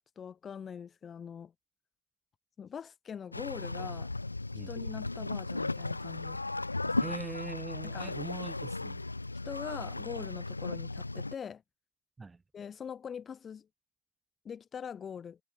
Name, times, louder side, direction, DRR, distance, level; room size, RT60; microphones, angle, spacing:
voice 1, 0.0-1.5 2.6-4.1 4.7-6.4 6.8-7.1 7.8-8.1 9.4-11.6 12.5-13.7 14.4-15.4, left 7 dB, 20° left, 1.0 m, -43 dB
sound 1, 3.3-11.3, left 2 dB, 80° left, 0.5 m, -36 dB
voice 2, 7.0-9.0 12.2-12.4, right 3 dB, 10° right, 0.6 m, -42 dB
figure-of-eight pair, 90°, 0 cm